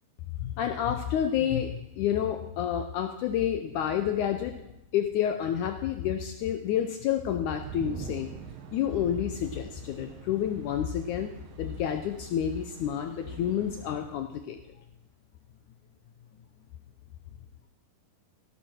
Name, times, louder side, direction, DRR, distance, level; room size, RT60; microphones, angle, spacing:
voice 1, 0.4-4.6 4.9-8.3 8.7-11.3 11.6-14.6, left 9 dB, 75° left, 6 dB, 2.0 m, -29 dB
sound 1, 7.5-14.1, right 7 dB, 85° right, 3.0 m, -45 dB
17.0 x 11.5 x 4.5 m, 0.86 s
omnidirectional pair, 4.0 m